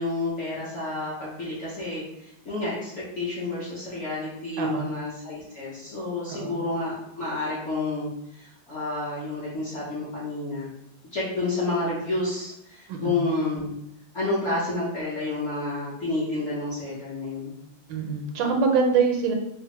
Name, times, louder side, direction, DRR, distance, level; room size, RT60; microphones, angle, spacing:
voice 1, 0.0-10.7 11.1-13.7 14.1-17.5, left 2 dB, 55° left, -8 dB, 0.8 m, -30 dB
voice 2, 4.6-4.9 6.3-6.5 12.9-13.2 17.9-19.3, right 5 dB, 80° right, 3 dB, 1.2 m, -24 dB
3.2 x 2.0 x 2.9 m, 0.78 s
omnidirectional pair, 2.0 m